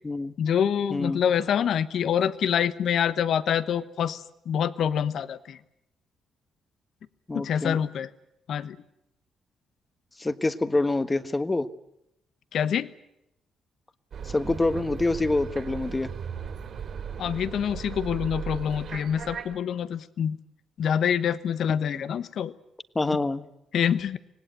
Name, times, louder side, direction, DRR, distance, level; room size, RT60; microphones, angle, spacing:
voice 1, 0.4-5.6 7.3-8.1 8.5-8.8 12.5-12.9 17.2-20.4 20.8-22.5 23.7-24.2, left 8 dB, 65° left, 14 dB, 1.1 m, -26 dB
voice 2, 0.9-1.2 7.3-7.8 10.2-11.7 14.2-16.1 21.9-22.0 22.9-23.5, left 2 dB, 20° left, 12 dB, 1.4 m, -26 dB
sound 1, 14.1-19.6, right 7 dB, 60° right, 3.7 m, -37 dB
25.5 x 18.5 x 9.1 m, 0.82 s
cardioid pair, 90°, 0 cm